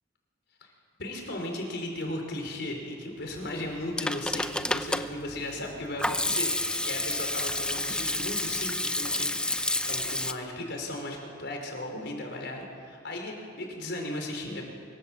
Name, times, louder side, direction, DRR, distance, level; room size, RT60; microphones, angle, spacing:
voice 1, 1.0-9.3 9.6-14.6, left 1 dB, 65° left, 2 dB, 5.2 m, -36 dB
Hands / Sink (filling or washing), 3.7-10.3, left 1 dB, 5° left, 0.8 m, -30 dB
25.0 x 24.5 x 7.8 m, 2.4 s
head